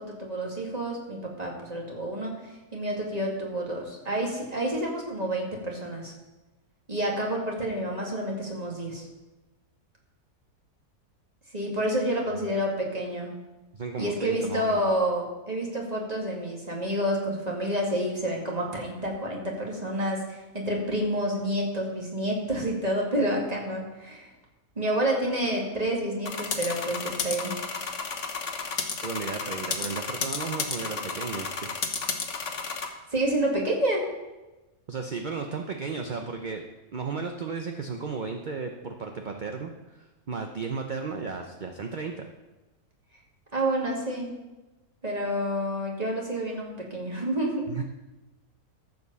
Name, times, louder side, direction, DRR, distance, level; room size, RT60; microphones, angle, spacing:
voice 1, 0.0-2.3 2.7-6.1 6.9-9.0 11.5-13.3 14.0-24.3 24.8-27.5 33.1-34.0 43.5-44.3 45.0-47.6, right 1 dB, 25° right, -2 dB, 2.3 m, -29 dB
voice 2, 13.7-14.8 29.0-31.8 34.9-36.7 36.9-42.3 47.7-47.8, right 5 dB, 45° right, 4 dB, 0.6 m, -34 dB
sound 1, 26.3-32.9, left 5 dB, 55° left, 1.4 m, -32 dB
14.0 x 5.3 x 6.9 m, 1.1 s
omnidirectional pair, 1.6 m